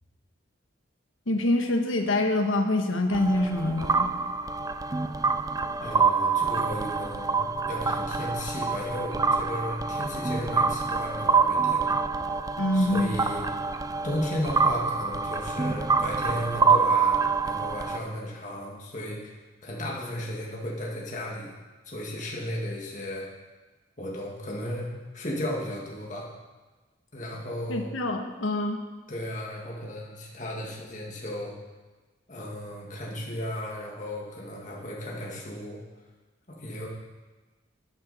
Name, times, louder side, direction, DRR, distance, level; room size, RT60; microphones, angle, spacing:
voice 1, 1.3-4.1 12.6-13.1 27.7-28.8, left 1 dB, 80° left, 4 dB, 1.4 m, -25 dB
sound 1, 3.1-18.0, right 4 dB, 15° right, 0.3 m, -26 dB
voice 2, 5.8-11.8 12.7-13.5 14.0-19.3 19.6-21.5 21.9-23.3 24.0-24.9 25.1-26.3 27.1-27.9 29.1-31.5 32.3-35.8 36.5-36.9, left 1 dB, 35° left, -3 dB, 2.0 m, -35 dB
13.0 x 9.7 x 4.3 m, 1.2 s
head